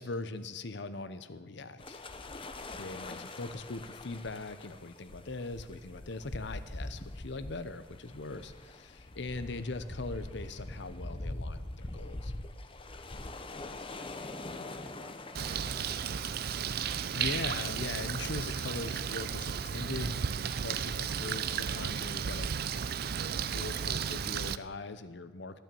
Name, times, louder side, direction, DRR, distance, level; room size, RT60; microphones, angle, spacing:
voice 1, 0.0-2.0 2.8-12.3 16.9-20.2 20.6-22.6 23.5-25.6, left 3 dB, 60° left, 12 dB, 0.8 m, -40 dB
sound 1, 1.8-18.8, left 2 dB, 25° left, 0.7 m, -44 dB
voice 2, 13.7-16.6, equal, 15° right, -8 dB, 2.7 m, -58 dB
Bird, 15.3-24.5, right 7 dB, 50° right, 0.4 m, -34 dB
14.5 x 9.1 x 7.0 m, 1.4 s
head